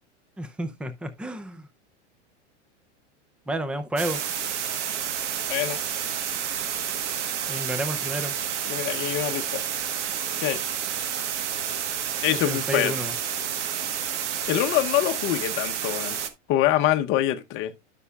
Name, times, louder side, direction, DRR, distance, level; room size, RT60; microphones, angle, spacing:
voice 1, 0.4-1.7 3.5-4.2 7.5-8.4 12.3-13.1, right 1 dB, 5° right, 0.5 m, -31 dB
sound 1, 4.0-16.3, right 8 dB, 75° right, 1.3 m, -30 dB
voice 2, 5.5-5.8 8.7-9.6 10.4-10.6 12.2-12.9 14.5-16.2 16.5-17.7, left 13 dB, 35° left, 0.9 m, -25 dB
12.5 x 5.7 x 2.3 m
supercardioid pair, 135°, 36 cm